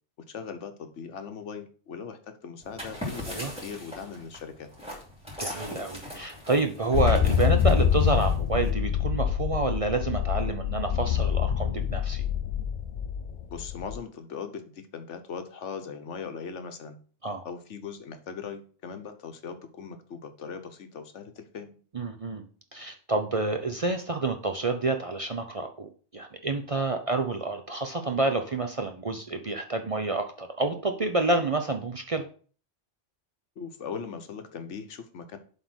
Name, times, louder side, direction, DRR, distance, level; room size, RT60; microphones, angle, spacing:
voice 1, 0.3-4.7 13.5-17.0 17.4-21.8 33.6-35.4, left 6 dB, 80° left, 8 dB, 1.2 m, -39 dB
sound 1, 2.6-8.7, left 1 dB, 5° right, 2.8 m, -40 dB
voice 2, 5.4-12.2 17.2-17.4 21.9-22.5 22.7-32.3, right 3 dB, 40° right, 5 dB, 0.6 m, -28 dB
sound 2, 6.9-14.0, left 9 dB, 60° left, 0.4 m, -26 dB
7.7 x 3.6 x 6.2 m, 0.41 s
omnidirectional pair, 1.2 m